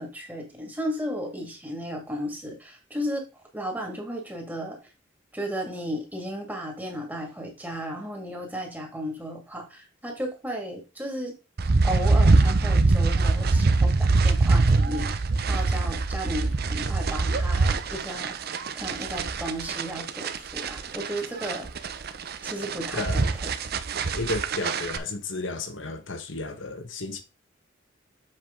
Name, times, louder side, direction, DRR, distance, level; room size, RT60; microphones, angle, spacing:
voice 1, 0.0-3.2 3.5-4.8 5.3-11.3 11.8-18.4 18.8-21.7 22.4-23.5, equal, 10° right, 2.0 m, -34 dB
sound 1, 11.6-25.0, right 3 dB, 55° right, 0.7 m, -23 dB
voice 2, 22.9-23.3 24.1-27.2, left 3 dB, 75° left, 1.3 m, -33 dB
7.7 x 4.9 x 3.7 m
head